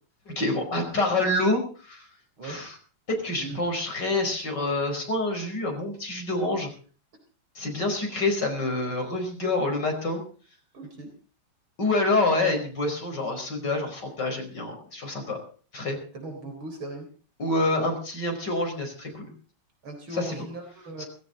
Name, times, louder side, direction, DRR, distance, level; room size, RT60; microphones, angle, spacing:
voice 1, 0.3-2.1 2.4-2.7 3.1-6.7 7.6-10.2 11.8-15.4 15.7-16.0 17.4-19.3 20.2-20.4 21.0-21.1, left 2 dB, 55° left, 3 dB, 5.7 m, -27 dB
voice 2, 10.7-11.1 16.1-17.1 19.8-21.0, right 2 dB, 75° right, 3 dB, 4.8 m, -38 dB
19.0 x 16.0 x 4.0 m, 0.40 s
omnidirectional pair, 2.3 m